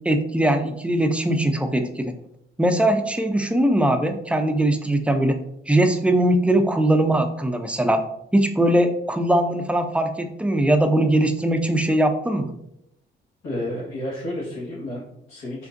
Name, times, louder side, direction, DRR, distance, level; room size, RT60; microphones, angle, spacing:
voice 1, 0.1-2.1 2.6-5.4 5.7-8.0 8.3-12.5, right 1 dB, 5° right, 6 dB, 0.3 m, -20 dB
voice 2, 13.4-15.7, left 1 dB, 75° left, -10 dB, 1.3 m, -31 dB
3.6 x 2.5 x 2.5 m, 0.77 s
cardioid pair, 90°, 20 cm